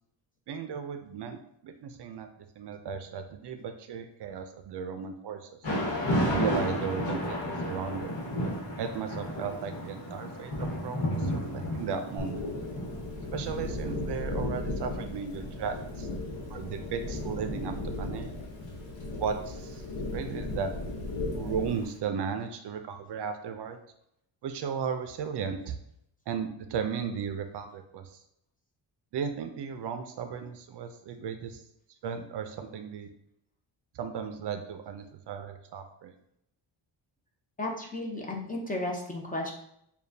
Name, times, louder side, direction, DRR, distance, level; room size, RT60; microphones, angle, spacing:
voice 1, 0.5-2.3 2.6-5.5 6.3-8.1 8.8-12.5 13.3-16.1 16.5-18.3 19.2-19.8 20.1-20.7 21.3-23.8 24.4-25.8 26.3-28.2 29.1-31.6 32.0-33.1 33.9-36.1, right 6 dB, 60° right, 7 dB, 0.5 m, -35 dB
Thunder / Rain, 5.6-21.7, equal, 65° left, 1.4 m, -34 dB
sound 1, 12.2-21.8, left 2 dB, 85° left, 0.9 m, -36 dB
voice 2, 37.6-39.5, left 1 dB, 20° left, 0 dB, 0.6 m, -34 dB
6.9 x 2.4 x 2.7 m, 0.75 s
wide cardioid pair, 150°, 46 cm